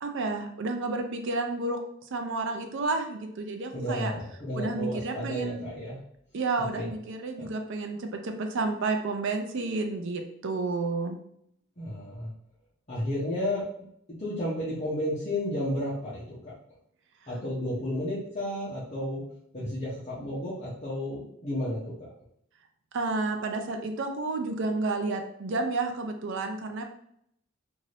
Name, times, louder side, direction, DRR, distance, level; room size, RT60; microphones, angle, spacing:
voice 1, 0.0-1.8 2.1-4.1 4.5-5.6 6.3-11.2 22.9-26.8, right 3 dB, 60° right, 5 dB, 0.5 m, -31 dB
voice 2, 3.7-6.0 6.7-6.9 7.4-7.5 11.8-12.3 12.9-13.7 14.2-16.4 17.3-19.2 19.5-21.9, left 1 dB, 30° left, -10 dB, 0.8 m, -32 dB
2.6 x 2.6 x 3.2 m, 0.72 s
head